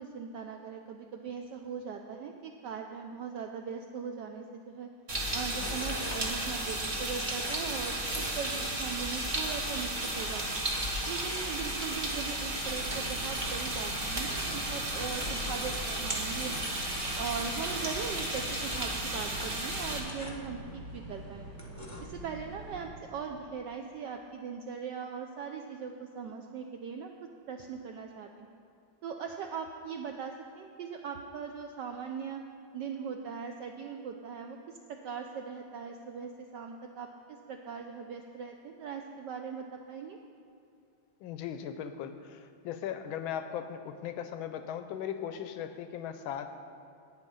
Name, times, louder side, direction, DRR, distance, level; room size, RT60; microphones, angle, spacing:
voice 1, 0.0-4.9 5.3-10.6 11.1-16.7 17.2-21.6 22.0-27.1 27.5-28.5 29.0-32.4 32.7-40.2, right 6 dB, 80° right, 4 dB, 1.0 m, -40 dB
sound 1, 5.1-20.0, right 1 dB, 30° right, 1.0 m, -34 dB
sound 2, 5.4-22.1, left 1 dB, 25° left, 0.3 m, -47 dB
sound 3, 12.7-22.9, right 1 dB, 50° right, 2.6 m, -46 dB
voice 2, 41.2-46.5, left 9 dB, 75° left, 9 dB, 1.3 m, -38 dB
9.8 x 8.8 x 5.4 m, 2.6 s
omnidirectional pair, 2.4 m